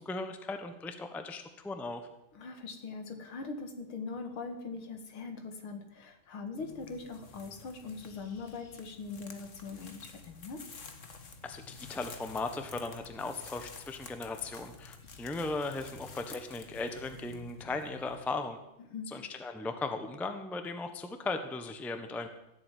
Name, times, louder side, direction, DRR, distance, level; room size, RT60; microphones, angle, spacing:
voice 1, 0.0-2.0 11.4-18.6 19.1-22.3, left 3 dB, ahead, 7 dB, 0.7 m, -37 dB
voice 2, 2.3-10.6 18.9-19.1, left 4 dB, 80° left, 6 dB, 2.7 m, -41 dB
sound 1, 6.6-18.2, left 4 dB, 40° left, 1.7 m, -50 dB
15.0 x 8.2 x 9.3 m, 0.87 s
omnidirectional pair, 2.3 m